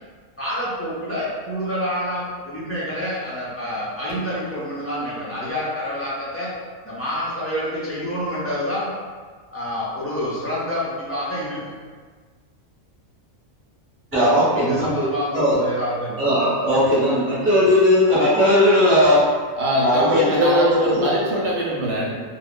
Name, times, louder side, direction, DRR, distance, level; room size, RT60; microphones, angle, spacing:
voice 1, 0.4-6.5 6.8-8.9 9.5-11.7 14.5-16.3, equal, 25° left, -9 dB, 0.3 m, -27 dB
voice 2, 14.1-15.1 15.3-15.6 16.2-19.2 19.8-21.0, left 1 dB, 10° right, -10 dB, 1.0 m, -17 dB
voice 3, 19.6-22.2, equal, 65° right, -4 dB, 0.8 m, -23 dB
2.4 x 2.3 x 3.5 m, 1.5 s
omnidirectional pair, 1.4 m